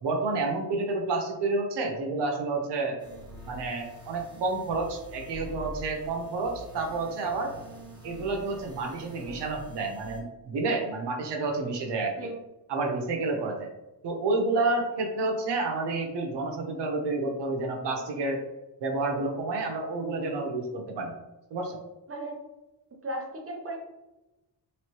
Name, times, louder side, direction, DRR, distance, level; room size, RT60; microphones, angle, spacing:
voice 1, 0.0-3.0 3.5-7.5 8.0-12.4 12.7-13.7 14.0-18.4 18.8-21.1 21.5-21.8, right 3 dB, 90° right, 2 dB, 0.9 m, -29 dB
sound 1, 3.0-10.2, equal, 10° right, 1.1 m, -46 dB
voice 2, 23.0-23.8, right 1 dB, 35° right, 0 dB, 0.9 m, -36 dB
3.3 x 3.2 x 3.0 m, 1.0 s
cardioid pair, 120°, 41 cm